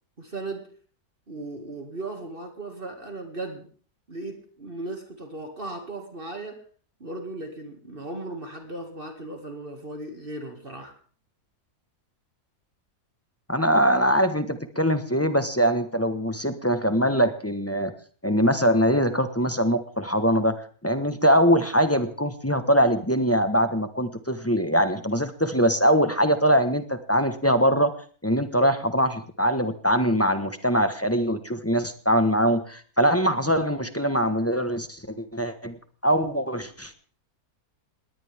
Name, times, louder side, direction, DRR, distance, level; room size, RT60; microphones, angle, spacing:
voice 1, 0.2-0.7 1.3-3.7 4.1-6.6 7.0-11.0, right 2 dB, 35° right, 4 dB, 2.4 m, -37 dB
voice 2, 13.5-17.9 18.2-27.9 28.2-36.9, equal, 10° left, 8 dB, 1.2 m, -22 dB
20.0 x 18.5 x 3.6 m, 0.43 s
omnidirectional pair, 1.6 m